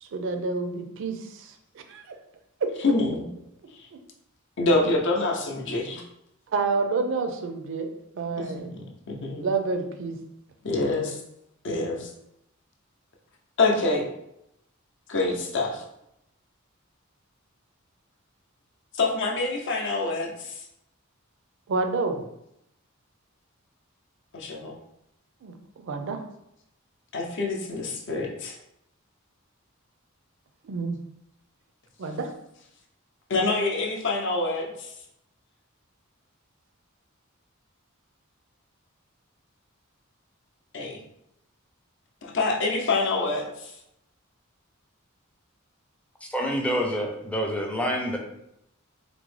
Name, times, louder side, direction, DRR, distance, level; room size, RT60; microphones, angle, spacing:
voice 1, 0.0-2.0 3.9-4.0 6.5-7.9 8.1-8.7 9.4-10.2 21.7-22.2 25.4-26.2 30.6-31.0 32.0-32.3, right 4 dB, 65° right, 6 dB, 0.4 m, -29 dB
voice 2, 2.8-3.2 4.6-6.0 8.4-8.6 9.1-9.5 10.6-11.2 11.6-12.1 13.6-14.1 15.1-15.8 19.0-20.5 24.3-24.7 27.1-28.5 33.3-34.7 40.7-41.0 42.2-43.7, left 3 dB, 60° left, 0 dB, 0.6 m, -26 dB
voice 3, 46.2-48.2, equal, 5° left, 0 dB, 0.4 m, -27 dB
3.6 x 2.0 x 3.1 m, 0.80 s
head